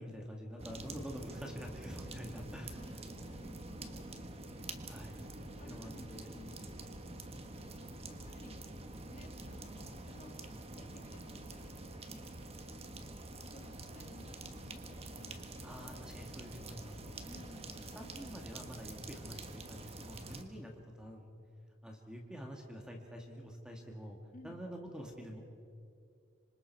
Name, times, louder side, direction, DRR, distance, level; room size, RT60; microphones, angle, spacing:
voice 1, 0.0-2.8 4.9-5.2 5.6-6.3 15.6-17.2 18.0-20.7 21.0-21.3 21.8-24.2 24.4-25.4, equal, 5° right, 1 dB, 1.9 m, -47 dB
sound 1, 0.6-20.4, right 2 dB, 30° right, 1.4 m, -47 dB
voice 2, 2.7-4.3 5.1-6.8 7.8-8.7 9.1-10.4 10.7-12.3 12.8-15.5 17.2-17.9 24.3-24.6, left 1 dB, 40° left, 2 dB, 2.6 m, -58 dB
26.0 x 26.0 x 4.6 m, 2.4 s
head